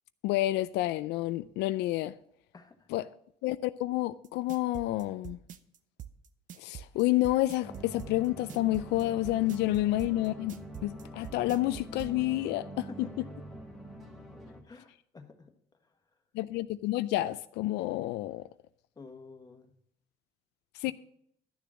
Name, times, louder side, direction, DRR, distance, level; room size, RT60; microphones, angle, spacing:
voice 1, 0.2-2.1 2.9-3.0 3.4-5.4 6.6-12.9 16.3-18.5 20.8-20.9, left 16 dB, 85° left, 0.4 m, -29 dB
voice 2, 2.5-3.0 12.9-13.6 14.6-15.5 15.8-16.0 18.9-19.7 20.9-21.0, left 4 dB, 25° left, 1.5 m, -50 dB
sound 1, 4.2-12.1, right 10 dB, 50° right, 0.8 m, -45 dB
sound 2, 7.6-14.6, right 1 dB, ahead, 1.8 m, -45 dB
12.0 x 6.9 x 6.3 m
cardioid pair, 110°, 17 cm